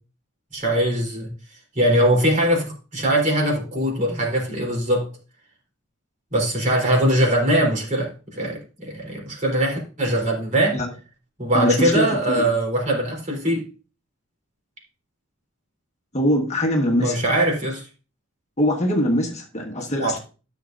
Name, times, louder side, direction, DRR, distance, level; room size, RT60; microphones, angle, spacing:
voice 1, 0.5-1.3 1.7-5.0 6.3-10.8 11.4-13.6 17.0-17.8 20.0-20.1, right 1 dB, 40° right, -1 dB, 3.4 m, -21 dB
voice 2, 11.5-12.5 16.1-17.2 18.6-20.2, equal, 35° left, 2 dB, 1.4 m, -22 dB
13.0 x 6.5 x 2.5 m, 0.34 s
head